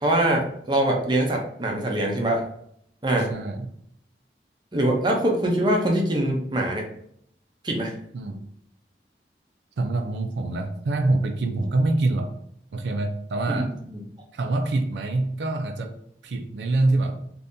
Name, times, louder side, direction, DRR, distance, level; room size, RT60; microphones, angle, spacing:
voice 1, 0.0-2.5 3.0-3.3 4.7-6.8 7.6-8.0 13.5-14.0, right 1 dB, 25° right, 0 dB, 0.6 m, -23 dB
voice 2, 3.3-3.7 8.1-8.4 9.8-12.3 12.7-13.7 14.3-16.0 16.2-17.3, right 2 dB, 80° right, 5 dB, 0.4 m, -25 dB
2.7 x 2.5 x 3.5 m, 0.70 s
head